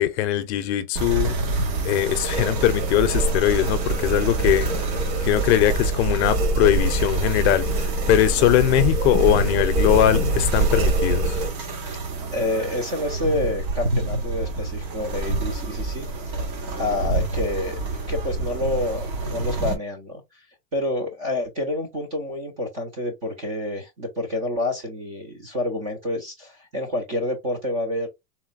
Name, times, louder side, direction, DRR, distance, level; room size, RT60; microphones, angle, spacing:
voice 1, 0.0-1.4 1.8-11.4, left 13 dB, 45° left, 0.5 m, -21 dB
sound 1, 1.0-19.8, right 2 dB, 90° right, 1.7 m, -28 dB
sound 2, 2.1-11.5, right 3 dB, 70° right, 2.3 m, -25 dB
voice 2, 12.3-16.4 16.8-17.8 18.1-20.4 20.7-28.1, left 1 dB, 25° right, 0.4 m, -28 dB
4.0 x 2.1 x 2.4 m
supercardioid pair, 145°, 49 cm